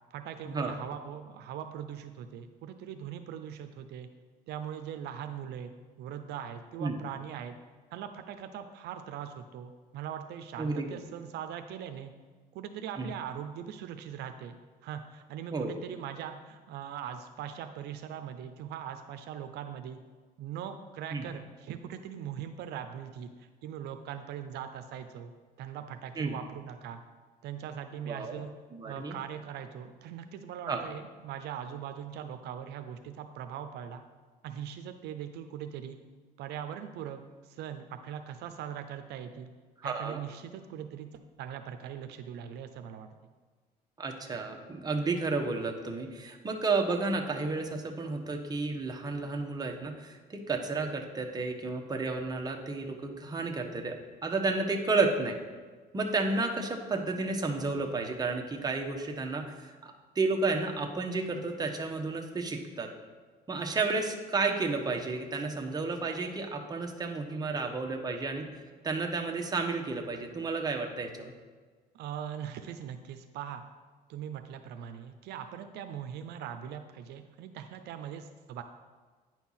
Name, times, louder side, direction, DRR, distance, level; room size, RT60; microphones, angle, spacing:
voice 1, 0.1-4.1 4.5-5.7 6.0-7.6 7.9-12.1 12.5-14.6 14.8-20.0 20.4-27.0 27.4-28.5 28.8-34.0 34.4-36.0 36.4-39.5 39.8-41.1 41.4-43.1 71.9-73.6 74.1-78.6, right 9 dB, 80° right, 7 dB, 0.6 m, -41 dB
voice 2, 10.6-11.0 13.0-13.1 15.5-15.7 21.1-21.2 26.2-26.3 28.1-28.4 28.7-29.2 30.7-30.8 39.8-40.2 44.0-55.4 55.9-62.9 63.5-68.5 68.8-71.3, right 3 dB, 25° right, 2 dB, 1.1 m, -32 dB
9.3 x 4.5 x 5.6 m, 1.4 s
cardioid pair, 110°, 17 cm